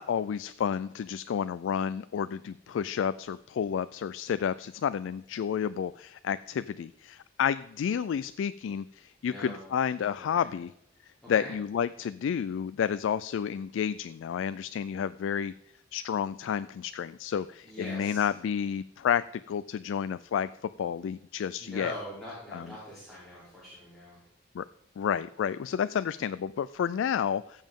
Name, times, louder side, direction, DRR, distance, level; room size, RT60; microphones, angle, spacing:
voice 1, 0.0-10.7 11.3-15.5 15.9-21.9 22.5-22.7 24.5-24.6 25.0-27.6, left 8 dB, 85° left, 14 dB, 0.3 m, -30 dB
voice 2, 9.2-9.7 10.0-10.5 11.3-11.5 17.6-18.2 21.6-24.2, equal, ahead, -9 dB, 3.3 m, -43 dB
15.5 x 7.2 x 3.6 m, 0.81 s
head